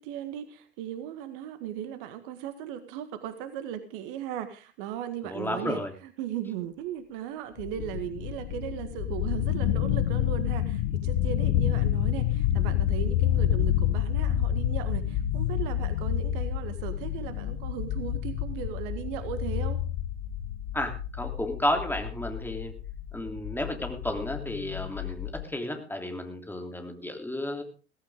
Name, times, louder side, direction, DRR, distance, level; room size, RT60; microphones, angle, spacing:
voice 1, 0.0-19.8, right 10 dB, 55° right, 10 dB, 1.8 m, -37 dB
voice 2, 5.2-5.9 20.7-22.7 23.1-27.6, left 1 dB, 5° left, 4 dB, 3.2 m, -32 dB
sound 1, 7.6-12.5 12.7-12.8 13.1-13.2 13.7-14.3 14.6-18.3, right 1 dB, 90° left, 7.1 m, -60 dB
sound 2, 7.6-25.4, left 11 dB, 55° left, 1.1 m, -29 dB
17.0 x 15.0 x 3.7 m, 0.35 s
figure-of-eight pair, 75°, 32 cm